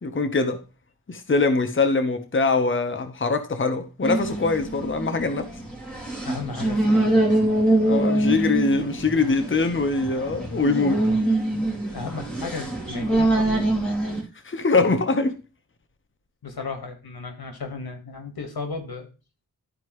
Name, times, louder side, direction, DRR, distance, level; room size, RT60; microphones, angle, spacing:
voice 1, 0.0-0.6 1.1-5.5 7.8-11.1 14.4-15.4, left 3 dB, 35° left, 1.0 m, -23 dB
sound 1, 4.0-14.2, right 1 dB, ahead, 2.8 m, -24 dB
voice 2, 6.2-7.5 11.9-13.6 16.4-19.1, left 4 dB, 85° left, 1.6 m, -35 dB
12.5 x 4.4 x 3.1 m
wide cardioid pair, 65°, 37 cm